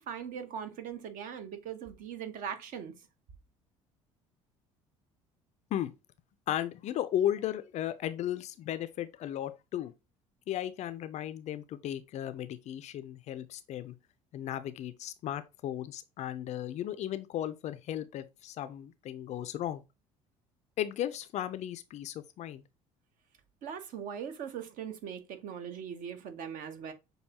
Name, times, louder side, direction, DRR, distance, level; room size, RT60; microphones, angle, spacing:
voice 1, 0.0-3.0 23.6-26.9, right 8 dB, 50° right, 0.8 m, -40 dB
voice 2, 6.5-9.9 10.5-14.0 14.3-19.8 20.8-22.6, left 11 dB, 40° left, 0.4 m, -35 dB
6.3 x 2.7 x 2.7 m
figure-of-eight pair, 55°, 18 cm